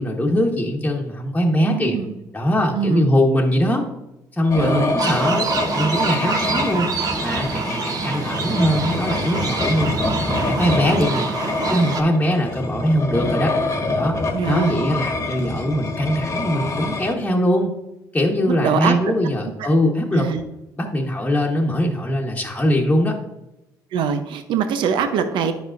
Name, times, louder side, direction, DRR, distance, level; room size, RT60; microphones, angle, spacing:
voice 1, 0.0-2.0 2.3-3.8 4.3-5.5 5.7-10.0 10.4-11.3 11.7-13.5 14.0-14.1 14.4-17.7 18.1-20.3 20.8-23.1, equal, 15° left, -2 dB, 1.2 m, -21 dB
voice 2, 1.6-2.1 2.7-3.1 4.5-4.9 14.3-14.9 18.5-19.1 19.4-19.7 20.1-20.4 23.9-25.5, right 7 dB, 70° right, 8 dB, 0.7 m, -23 dB
sound 1, 4.5-17.1, left 2 dB, 40° left, 1.3 m, -26 dB
sound 2, 5.0-12.0, right 4 dB, 45° right, 1.0 m, -26 dB
10.0 x 5.4 x 2.6 m, 0.92 s
supercardioid pair, 70°, 8 cm